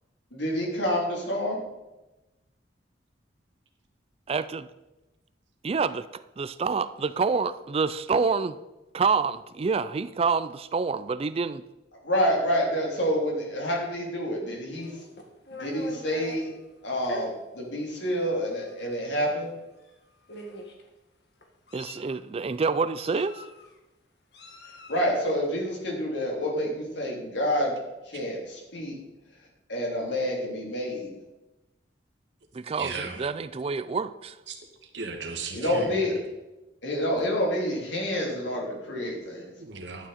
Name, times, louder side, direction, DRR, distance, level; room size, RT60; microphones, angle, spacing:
voice 1, 0.3-1.6 12.0-14.9 15.6-16.6 16.8-19.5 24.9-27.7 28.1-29.0 29.7-31.1 35.5-36.2 36.8-39.5, equal, 85° left, -2 dB, 3.2 m, -28 dB
voice 2, 4.3-4.7 5.6-6.1 6.4-8.6 8.9-11.6 21.7-23.5 32.5-34.4, right 5 dB, 35° right, 14 dB, 0.4 m, -27 dB
Meow, 14.7-16.4 17.0-17.2 18.1-18.2 18.6-18.8 19.8-19.9 20.3-20.8 21.4-22.2 23.0-23.7 24.3-25.0, left 1 dB, 65° left, 1.8 m, -42 dB
voice 3, 32.8-33.2 34.5-34.6 34.9-36.0 39.6-40.1, right 4 dB, 80° right, 3 dB, 1.7 m, -36 dB
11.5 x 9.3 x 4.3 m, 1.0 s
head